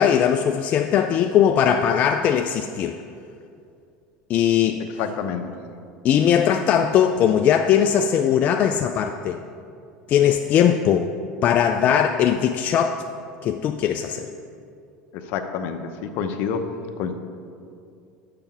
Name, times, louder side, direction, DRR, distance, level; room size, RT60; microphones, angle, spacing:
voice 1, 0.0-3.0 4.3-4.8 6.0-9.4 10.1-11.1 11.4-13.0 13.4-14.3, left 9 dB, 45° left, 6 dB, 0.4 m, -19 dB
voice 2, 5.0-5.5 15.3-16.7 17.0-17.1, left 7 dB, 65° left, 7 dB, 0.7 m, -27 dB
6.8 x 6.7 x 5.8 m, 2.5 s
supercardioid pair, 110°, 4 cm